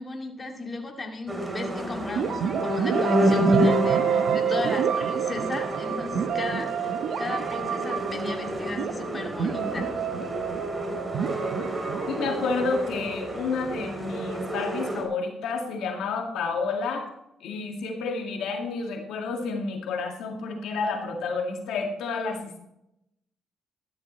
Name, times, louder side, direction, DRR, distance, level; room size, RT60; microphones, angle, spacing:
voice 1, 0.0-10.0, left 3 dB, 30° left, 1 dB, 2.4 m, -36 dB
sound 1, 1.3-15.0, equal, 15° right, 3.1 m, -29 dB
sound 2, 2.1-13.9, right 8 dB, 70° right, 0.9 m, -29 dB
voice 2, 12.1-17.1 17.4-22.6, left 4 dB, 85° left, 2 dB, 2.0 m, -30 dB
13.5 x 12.5 x 3.1 m, 0.82 s
cardioid pair, 90°, 0 cm